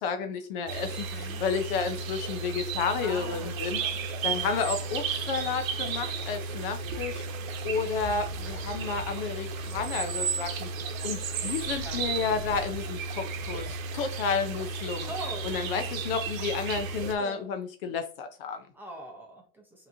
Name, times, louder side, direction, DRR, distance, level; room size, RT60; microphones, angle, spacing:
voice 1, 0.0-3.8 4.2-7.2 7.6-10.7 11.0-13.7 13.9-15.1 15.4-18.6, left 5 dB, 45° left, 7 dB, 0.6 m, -31 dB
sound 1, 0.7-17.1, right 4 dB, 75° right, 0.9 m, -34 dB
voice 2, 1.0-1.4 3.0-4.0 4.3-4.5 11.1-11.4 11.8-12.0 15.1-15.5 17.2-17.5 18.7-19.9, right 1 dB, 5° right, 0 dB, 0.7 m, -42 dB
5.0 x 3.0 x 2.6 m, 0.38 s
supercardioid pair, 155°, 41 cm